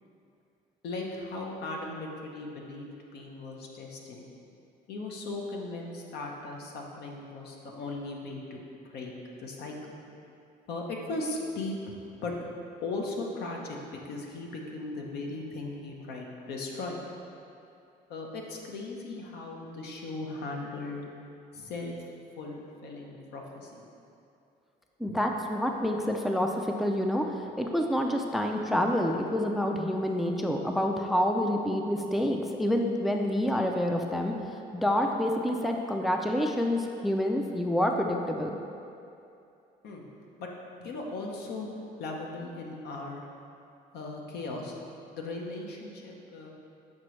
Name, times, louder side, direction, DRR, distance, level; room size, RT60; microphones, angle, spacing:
voice 1, 0.8-4.3 4.9-8.6 8.9-9.1 9.4-9.9 10.7-11.8 12.2-12.3 12.8-17.0 18.1-21.1 21.5-21.9 22.4-23.9 25.1-25.2 39.8-40.0 40.4-40.5 40.8-41.7 42.0-43.2 43.9-44.8 45.1-46.5, left 2 dB, 75° left, 0 dB, 0.9 m, -37 dB
voice 2, 25.0-34.3 34.7-38.6, left 1 dB, ahead, 2 dB, 0.4 m, -28 dB
7.5 x 5.0 x 3.2 m, 2.6 s
cardioid pair, 110°, 17 cm